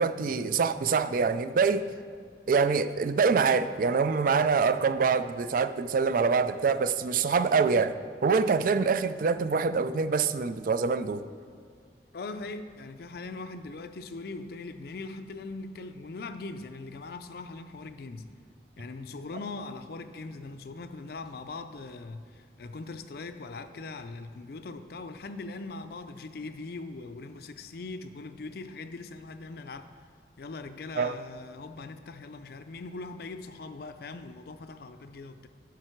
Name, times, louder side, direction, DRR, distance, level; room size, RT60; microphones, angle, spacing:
voice 1, 0.0-1.8 2.5-8.0 8.2-11.2 31.0-31.1, right 5 dB, 50° right, 12 dB, 0.3 m, -25 dB
voice 2, 12.1-18.3 18.8-29.9 30.4-35.5, left 3 dB, 60° left, 9 dB, 0.4 m, -41 dB
11.0 x 5.8 x 4.5 m, 2.1 s
head